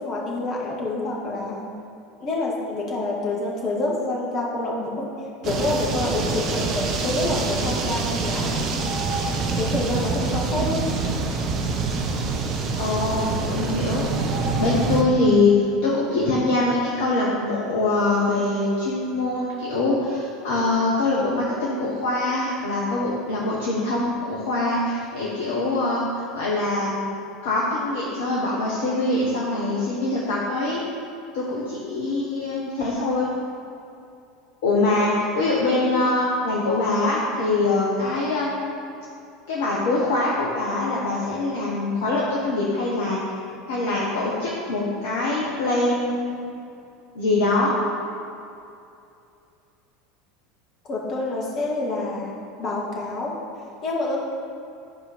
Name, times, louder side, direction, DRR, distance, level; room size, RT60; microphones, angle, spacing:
voice 1, 0.0-1.6 2.2-5.1 5.4-8.6 9.6-10.9 50.8-53.4 53.8-54.2, left 2 dB, 40° left, -3 dB, 2.1 m, -27 dB
sound 1, 5.4-15.0, right 4 dB, 45° right, 1.0 m, -26 dB
voice 2, 12.8-26.9 27.4-30.8 31.3-33.3 34.6-38.7 39.5-43.2 43.7-46.5 47.1-47.7, left 2 dB, 60° left, -5 dB, 1.4 m, -23 dB
11.5 x 5.0 x 5.2 m, 2.6 s
figure-of-eight pair, 75°, 0 cm